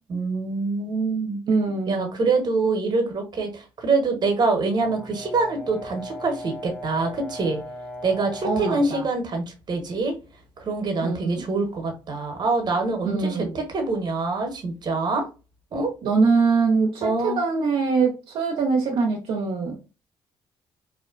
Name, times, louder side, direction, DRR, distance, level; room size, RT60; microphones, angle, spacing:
voice 1, 0.1-1.4 1.7-7.6 8.0-10.1 10.6-15.3 15.7-15.9 17.0-17.5, right 3 dB, 45° right, 0.9 m, -25 dB
voice 2, 1.5-2.1 8.4-9.0 11.0-11.4 13.0-13.6 16.0-19.7, right 4 dB, 70° right, 0.5 m, -23 dB
Brass instrument, 4.8-9.0, left 1 dB, 10° left, 0.7 m, -38 dB
2.4 x 2.1 x 2.4 m
supercardioid pair, 60°, 10 cm